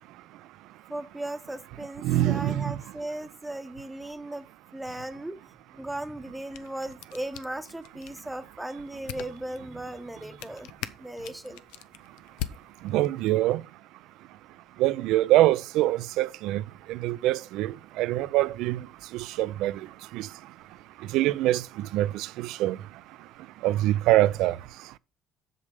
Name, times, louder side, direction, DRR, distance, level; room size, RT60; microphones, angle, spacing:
voice 1, 0.9-4.5 4.7-11.6, right 1 dB, 10° right, 0.9 m, -37 dB
voice 2, 2.0-2.8 12.8-13.6 14.8-16.6 16.9-18.9 19.1-19.8 20.1-20.3 21.1-22.8 23.6-24.6, right 15 dB, 80° right, 0.5 m, -24 dB
sound 1, 6.2-13.3, left 12 dB, 90° left, 0.6 m, -43 dB
7.6 x 6.5 x 5.3 m
supercardioid pair, 85°, 0 cm